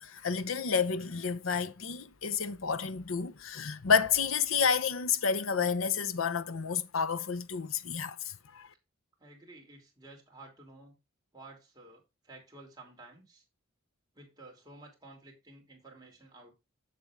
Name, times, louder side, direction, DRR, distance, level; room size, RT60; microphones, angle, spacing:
voice 1, 0.0-8.7, left 6 dB, 75° left, 0.7 m, -30 dB
voice 2, 9.2-11.0 11.3-13.4 14.1-16.5, right 2 dB, 20° right, 3.0 m, -53 dB
7.6 x 6.9 x 3.6 m
head